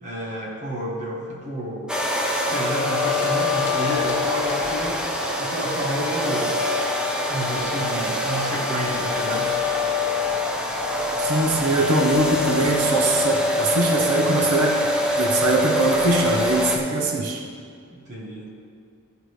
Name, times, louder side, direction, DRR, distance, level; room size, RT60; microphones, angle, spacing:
voice 1, 0.0-1.9 2.3-6.5 7.3-9.5 17.9-18.5, equal, 35° right, -3 dB, 1.2 m, -30 dB
sound 1, 1.9-16.8, left 1 dB, 5° right, 0.6 m, -24 dB
sound 2, 3.0-16.6, left 1 dB, 50° left, 1.6 m, -41 dB
voice 2, 11.2-14.8 15.2-17.4, right 2 dB, 75° right, 1 dB, 0.9 m, -22 dB
14.0 x 4.9 x 3.2 m, 2.3 s
head